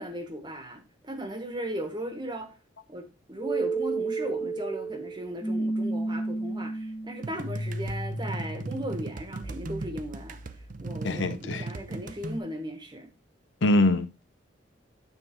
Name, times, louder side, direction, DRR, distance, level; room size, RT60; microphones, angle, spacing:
voice 1, 0.0-2.5 2.9-10.4 10.8-13.1, right 1 dB, 25° right, 1.2 m, -37 dB
sound 1, 3.4-11.3, right 2 dB, 15° left, 0.9 m, -33 dB
sound 2, 7.2-12.4, right 3 dB, 45° right, 0.5 m, -38 dB
voice 2, 11.0-11.6 13.6-14.2, left 2 dB, 70° left, 0.6 m, -24 dB
9.0 x 3.8 x 4.3 m
head